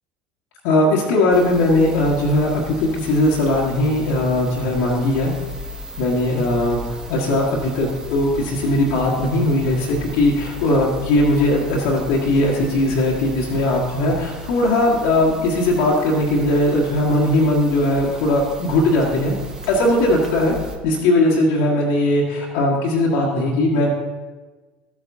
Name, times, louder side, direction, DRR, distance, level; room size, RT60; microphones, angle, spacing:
voice 1, 0.6-5.3 6.0-19.3 19.7-20.5 20.8-23.9, left 1 dB, 60° left, -4 dB, 1.5 m, -19 dB
sound 1, 1.3-20.8, left 1 dB, 15° right, 1.2 m, -36 dB
13.5 x 8.4 x 2.7 m, 1.3 s
figure-of-eight pair, 65°, 5 cm